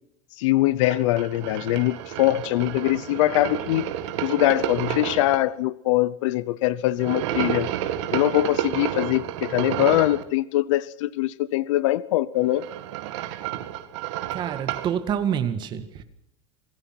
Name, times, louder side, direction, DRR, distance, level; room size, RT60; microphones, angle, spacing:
voice 1, 0.4-3.8 4.2-7.7 8.1-12.6, left 16 dB, 75° left, 0.8 m, -22 dB
sound 1, 0.8-5.4 7.0-10.2 12.3-14.9, right 11 dB, 70° right, 2.2 m, -30 dB
voice 2, 14.3-16.0, right 8 dB, 30° right, 1.9 m, -27 dB
27.5 x 18.5 x 6.0 m
supercardioid pair, 170°, 16 cm